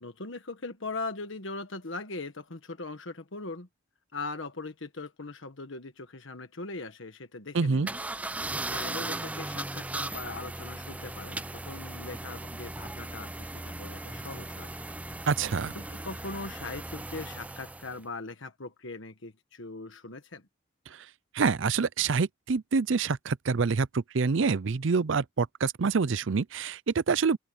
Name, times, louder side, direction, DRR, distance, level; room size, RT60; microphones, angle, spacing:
voice 1, 0.0-3.7 4.1-8.0 8.7-14.7 15.0-15.2 15.7-20.4, left 3 dB, 70° left, 1.4 m, -40 dB
voice 2, 7.5-7.9 15.3-15.7 20.9-21.1 21.3-27.4, right 5 dB, 65° right, 0.5 m, -26 dB
sound 1, 7.9-18.0, right 2 dB, 5° right, 0.3 m, -37 dB
open air
head